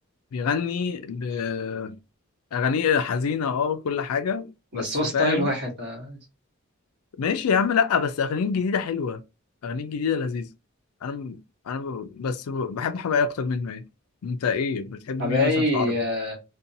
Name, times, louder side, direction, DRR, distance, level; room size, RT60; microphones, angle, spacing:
voice 1, 0.3-2.0 2.5-4.9 5.1-5.5 7.2-9.2 9.6-10.5 11.0-11.4 11.7-13.8 14.2-15.9, left 6 dB, 85° left, 0.4 m, -26 dB
voice 2, 4.7-6.2 15.2-16.4, left 1 dB, 50° right, 1.2 m, -25 dB
2.6 x 2.2 x 2.6 m
head